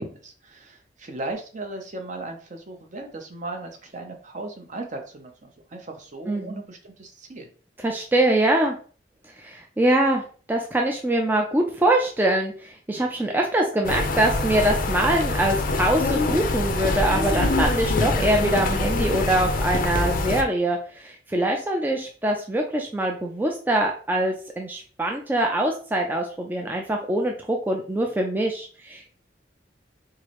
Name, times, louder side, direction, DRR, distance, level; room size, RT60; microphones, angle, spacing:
voice 1, 0.0-7.5, right 2 dB, 45° right, 4 dB, 0.7 m, -37 dB
voice 2, 6.3-6.6 7.8-8.8 9.4-10.2 10.5-29.1, right 1 dB, 10° right, 1 dB, 0.4 m, -23 dB
sound 1, 13.8-20.4, left 2 dB, 50° left, 0.5 m, -24 dB
4.6 x 2.0 x 3.0 m, 0.40 s
head